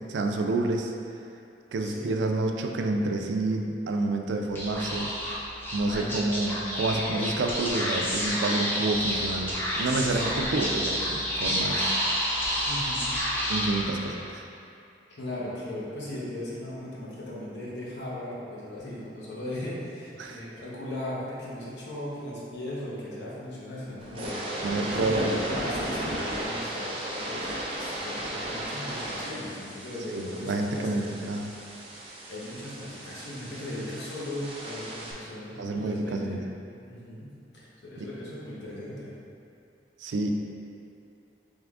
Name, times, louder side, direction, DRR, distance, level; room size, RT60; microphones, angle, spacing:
voice 1, 0.1-0.9 1.7-5.1 5.7-12.0 13.5-14.5 20.2-20.4 24.6-25.4 30.1-31.5 35.6-36.4 40.0-40.3, right 2 dB, 90° right, 3 dB, 0.4 m, -28 dB
Speech / Whispering, 4.5-14.3, equal, 15° left, 0.7 m, -29 dB
voice 2, 5.9-6.2 10.1-10.2 12.6-13.1 15.2-24.4 24.9-31.0 32.3-36.4 36.8-39.1, left 1 dB, 70° left, -7 dB, 0.9 m, -37 dB
sound 1, 24.0-35.1, right 1 dB, 30° right, 0.6 m, -36 dB
3.6 x 3.3 x 3.5 m, 2.5 s
head